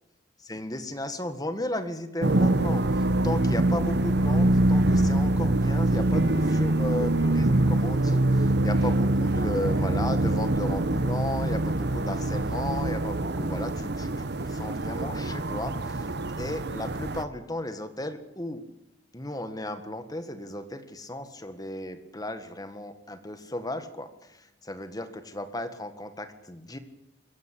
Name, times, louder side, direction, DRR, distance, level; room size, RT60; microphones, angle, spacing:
voice 1, 0.4-16.1 16.4-18.6 19.1-26.8, left 1 dB, 20° left, 9 dB, 1.7 m, -35 dB
sound 1, 2.2-17.2, right 1 dB, 60° right, 1.0 m, -24 dB
23.0 x 16.5 x 8.4 m, 0.90 s
head